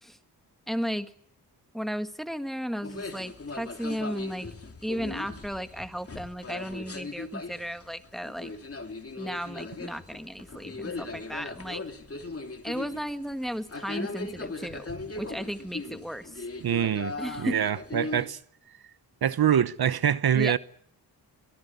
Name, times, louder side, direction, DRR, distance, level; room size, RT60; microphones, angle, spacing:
voice 1, 0.7-1.1 1.7-4.5 4.8-8.5 9.2-11.8 12.6-14.9 15.1-16.4 17.2-17.6 20.3-20.5, equal, ahead, 1.7 m, -34 dB
sound 1, 2.8-18.3, left 3 dB, 35° left, 3.2 m, -39 dB
voice 2, 16.6-18.4 19.2-20.6, right 9 dB, 65° right, 1.0 m, -25 dB
23.5 x 18.0 x 9.4 m
wide cardioid pair, 90°, 40 cm